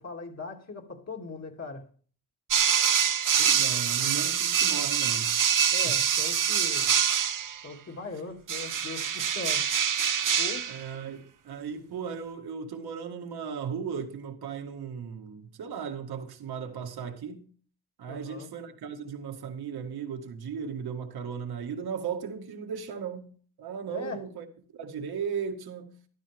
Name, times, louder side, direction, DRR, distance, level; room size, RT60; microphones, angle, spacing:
voice 1, 0.0-1.9 5.7-6.9 7.6-9.7 10.4-10.7 18.1-18.5 23.9-24.2, left 3 dB, 40° left, 2.8 m, -39 dB
sound 1, 2.5-7.6 8.5-10.8, right 8 dB, 55° right, 1.1 m, -25 dB
voice 2, 3.4-5.9 10.7-17.5 18.0-23.3 23.6-24.5 24.7-26.0, right 7 dB, 75° right, 2.1 m, -36 dB
14.0 x 12.5 x 3.6 m
cardioid pair, 90°, 38 cm